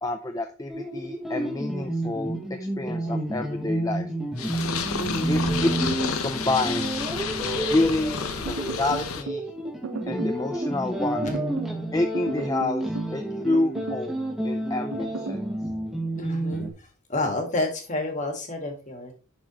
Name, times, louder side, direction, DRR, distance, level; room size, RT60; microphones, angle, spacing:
voice 1, 0.0-2.4 2.8-4.1 5.3-5.7 5.9-7.0 7.7-9.5 10.1-11.3 11.9-15.4, left 2 dB, 15° left, 5 dB, 0.4 m, -28 dB
sound 1, 0.7-16.7, right 1 dB, ahead, 1.0 m, -30 dB
Purr, 4.4-9.2, left 6 dB, 80° left, 0.8 m, -31 dB
voice 2, 5.0-5.4 16.2-19.1, left 2 dB, 35° left, 3 dB, 1.6 m, -30 dB
sound 2, 8.5-9.4 9.8-10.4 11.2-11.8 12.1-13.2 13.5-14.1 14.9-15.4, right 4 dB, 80° right, 1.0 m, -35 dB
10.5 x 4.1 x 2.9 m, 0.35 s
head